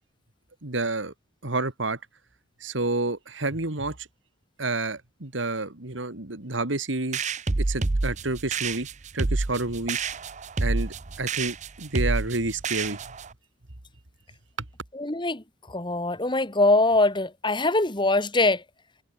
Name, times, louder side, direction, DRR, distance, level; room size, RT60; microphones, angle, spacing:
voice 1, 0.6-1.1 1.4-2.0 2.6-4.1 4.6-7.2 7.6-8.9 9.1-10.0 10.6-13.0, right 2 dB, 80° right, 2.5 m, -29 dB
sound 1, 7.1-13.3, right 3 dB, 40° right, 0.7 m, -28 dB
voice 2, 14.9-18.6, left 2 dB, 25° left, 2.0 m, -23 dB
head